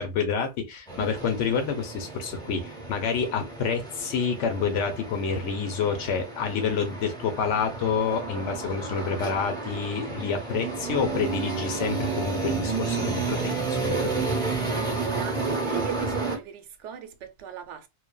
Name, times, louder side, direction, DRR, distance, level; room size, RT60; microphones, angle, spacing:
voice 1, 0.0-14.4, left 6 dB, 85° left, 1.0 m, -28 dB
sound 1, 0.9-16.4, right 4 dB, 5° left, 0.7 m, -31 dB
voice 2, 14.7-17.9, right 8 dB, 80° right, 0.9 m, -37 dB
3.0 x 2.0 x 2.2 m
omnidirectional pair, 1.2 m